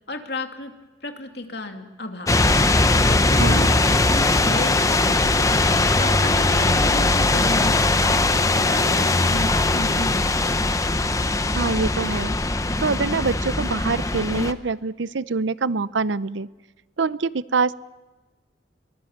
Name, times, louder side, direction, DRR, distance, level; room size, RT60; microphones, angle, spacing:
voice 1, 0.1-0.7 1.0-2.3 2.9-7.9 8.3-10.3, left 2 dB, 65° left, 5 dB, 2.6 m, -33 dB
sound 1, 2.3-14.5, left 2 dB, 20° left, 0.8 m, -20 dB
voice 2, 11.5-12.4 12.8-16.5 17.0-17.7, right 4 dB, 85° right, 17 dB, 0.7 m, -25 dB
23.5 x 20.5 x 7.3 m, 1.2 s
head